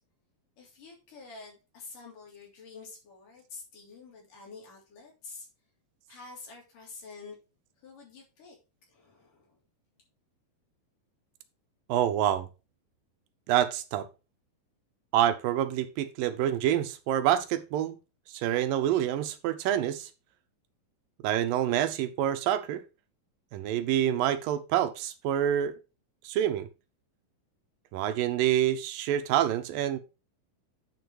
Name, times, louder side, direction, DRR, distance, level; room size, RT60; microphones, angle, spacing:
voice 1, 0.6-5.5 6.1-7.3 7.8-8.6 8.9-9.6, left 4 dB, 65° left, -2 dB, 4.8 m, -48 dB
voice 2, 11.9-12.5 13.5-14.1 15.1-18.0 18.3-20.1 21.2-22.8 23.5-25.7 26.2-26.7 27.9-30.0, right 11 dB, 80° right, 10 dB, 2.4 m, -27 dB
9.5 x 5.0 x 4.6 m, 0.30 s
omnidirectional pair, 4.1 m